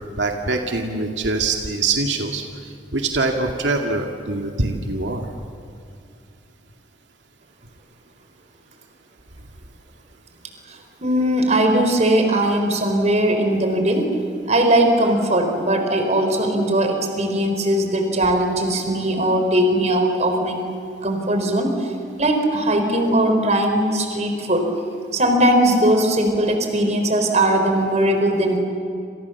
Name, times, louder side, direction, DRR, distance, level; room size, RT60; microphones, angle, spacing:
voice 1, 0.2-2.4 2.9-5.3, right 3 dB, 85° right, 2 dB, 2.2 m, -23 dB
voice 2, 11.0-14.1 14.5-20.6 21.0-21.9 22.2-24.7 25.1-28.6, right 1 dB, 40° right, 5 dB, 4.3 m, -19 dB
28.0 x 28.0 x 7.2 m, 2.4 s
head